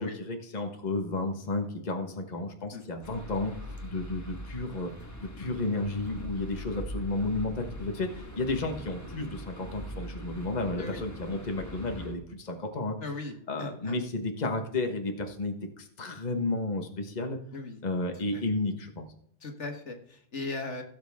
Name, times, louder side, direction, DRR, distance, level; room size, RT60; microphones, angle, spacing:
voice 1, 0.0-3.5 3.8-4.9 5.2-13.0 13.5-17.4 17.8-19.1, left 2 dB, 40° left, 4 dB, 1.4 m, -32 dB
sound 1, 3.0-12.1, equal, 15° left, 1.5 m, -42 dB
voice 2, 13.0-14.0 17.5-17.8 18.3-18.4 19.4-20.8, left 3 dB, 75° left, 4 dB, 2.0 m, -38 dB
17.0 x 7.5 x 3.6 m, 0.69 s
omnidirectional pair, 1.2 m